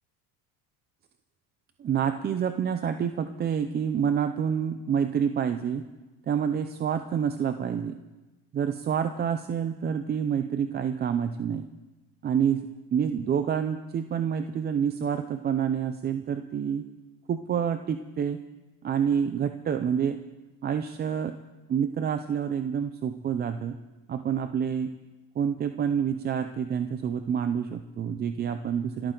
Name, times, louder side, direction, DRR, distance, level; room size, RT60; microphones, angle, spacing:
voice 1, 1.8-5.9 6.3-7.9 8.5-11.7 12.2-16.9 17.3-18.4 18.8-20.2 20.6-21.4 21.7-23.8 24.1-24.9 25.4-29.1, right 8 dB, 25° right, 8 dB, 0.6 m, -28 dB
26.5 x 13.5 x 3.9 m, 1.2 s
cardioid pair, 145°, 37 cm